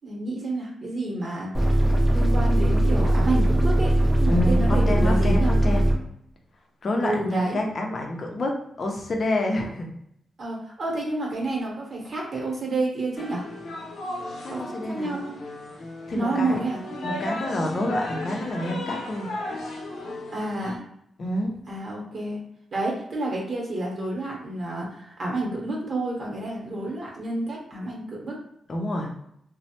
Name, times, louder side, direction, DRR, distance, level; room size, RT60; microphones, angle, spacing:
voice 1, 0.0-1.8 2.1-5.5 7.0-7.6 10.4-13.4 14.5-15.5 16.1-16.8 20.3-20.8 21.7-22.4 22.7-28.4, right 2 dB, 45° right, -2 dB, 0.9 m, -29 dB
sound 1, 1.5-5.9, right 1 dB, 10° right, 0.7 m, -20 dB
voice 2, 4.2-5.9 6.8-9.9 14.4-15.1 16.1-16.7 17.0-19.3 21.2-21.5 28.7-29.1, left 1 dB, 45° left, 2 dB, 0.6 m, -28 dB
sound 2, 13.2-20.8, left 1 dB, 85° left, 0.6 m, -35 dB
3.1 x 2.0 x 2.8 m, 0.73 s
wide cardioid pair, 120°, 0 cm